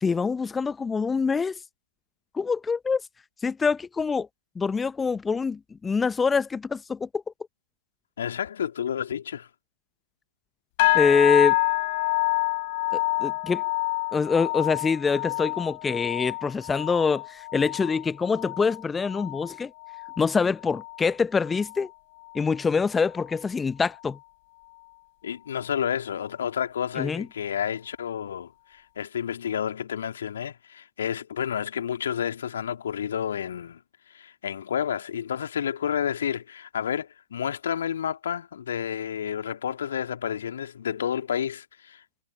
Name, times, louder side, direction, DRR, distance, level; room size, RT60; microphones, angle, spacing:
voice 1, 0.0-1.6 2.3-3.0 3.4-4.3 4.6-7.2 10.9-11.6 12.9-13.6 14.1-19.7 20.2-21.9 22.3-24.2 27.0-27.3, left 5 dB, 10° left, 1.0 m, -25 dB
voice 2, 8.2-9.5 25.2-33.8 34.1-42.0, left 8 dB, 55° left, 2.8 m, -30 dB
sound 1, 10.8-20.3 20.6-21.1 21.5-21.8 22.4-22.5, left 21 dB, 40° left, 4.2 m, -28 dB
figure-of-eight pair, 115°, 0 cm